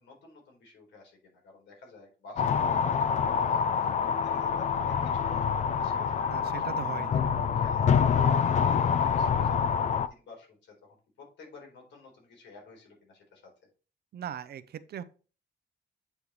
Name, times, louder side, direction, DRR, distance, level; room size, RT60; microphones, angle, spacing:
voice 1, 0.0-13.5, left 3 dB, 90° left, 0 dB, 4.0 m, -50 dB
sound 1, 2.4-10.1, left 7 dB, 40° left, 0.4 m, -26 dB
sound 2, 3.1-9.1, left 7 dB, 75° left, 0.8 m, -46 dB
voice 2, 6.3-7.1 14.1-15.0, right 9 dB, 60° right, 13 dB, 0.7 m, -38 dB
8.2 x 5.6 x 3.1 m, 0.36 s
wide cardioid pair, 160°, 18 cm